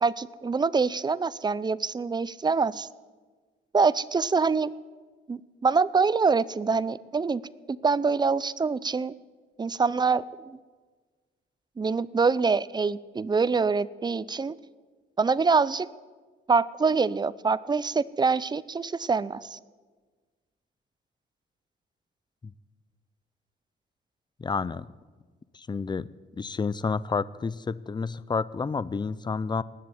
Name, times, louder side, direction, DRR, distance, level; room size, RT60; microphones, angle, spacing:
voice 1, 0.0-2.9 3.7-4.7 5.3-7.4 7.7-9.1 9.6-10.6 11.8-14.6 15.2-15.9 16.5-19.6, right 4 dB, 20° right, 19 dB, 0.5 m, -25 dB
voice 2, 24.4-24.9 25.5-26.1 26.3-29.6, left 4 dB, 20° left, 19 dB, 0.6 m, -30 dB
19.0 x 7.6 x 9.7 m, 1.4 s
cardioid pair, 90°, 20 cm